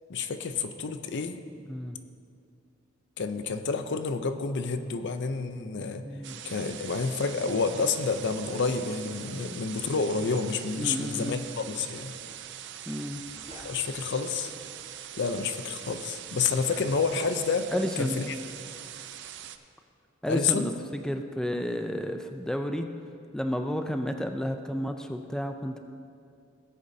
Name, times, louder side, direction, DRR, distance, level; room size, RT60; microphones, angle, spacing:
voice 1, 0.1-1.4 3.2-6.0 6.4-12.1 13.6-14.5 15.2-17.7 18.0-18.3 20.3-20.7, left 4 dB, 60° left, 9 dB, 0.6 m, -29 dB
voice 2, 1.6-2.0 6.0-6.4 10.8-11.4 12.9-13.2 17.7-18.2 20.2-22.9 23.3-25.8, equal, 5° left, 5 dB, 0.4 m, -31 dB
sound 1, 6.2-19.6, right 10 dB, 60° right, 0.5 m, -43 dB
sound 2, 13.1-13.7 14.6-14.8 15.5-15.6 16.5-17.4, left 1 dB, 30° left, 1.3 m, -49 dB
17.5 x 8.3 x 2.7 m, 2.4 s
head